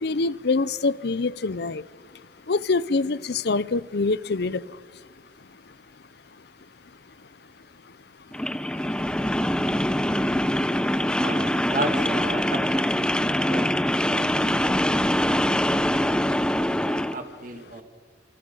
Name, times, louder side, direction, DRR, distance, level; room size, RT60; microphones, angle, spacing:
voice 1, 0.0-1.8 2.5-4.6, left 3 dB, 65° left, 19 dB, 0.7 m, -25 dB
sound 1, 8.3-17.2, equal, 5° left, 0.9 m, -24 dB
voice 2, 11.2-13.7 14.1-17.8, right 2 dB, 50° right, 5 dB, 2.5 m, -36 dB
29.5 x 28.0 x 5.6 m, 1.6 s
head